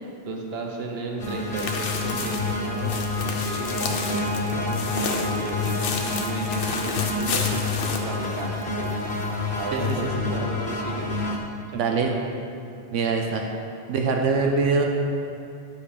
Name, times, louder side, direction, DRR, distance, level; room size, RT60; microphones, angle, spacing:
voice 1, 0.3-8.9 9.5-11.2 11.7-12.2, right 3 dB, 60° right, 1 dB, 1.1 m, -34 dB
sound 1, 1.2-8.9 9.3-9.4 9.9-10.0, left 5 dB, 75° left, 1.0 m, -32 dB
sound 2, 1.2-11.4, left 3 dB, 50° left, 1.1 m, -28 dB
voice 2, 11.7-12.1 12.9-13.4 13.9-14.8, right 4 dB, 85° right, 2 dB, 1.0 m, -23 dB
8.7 x 5.4 x 4.9 m, 2.5 s
omnidirectional pair, 1.2 m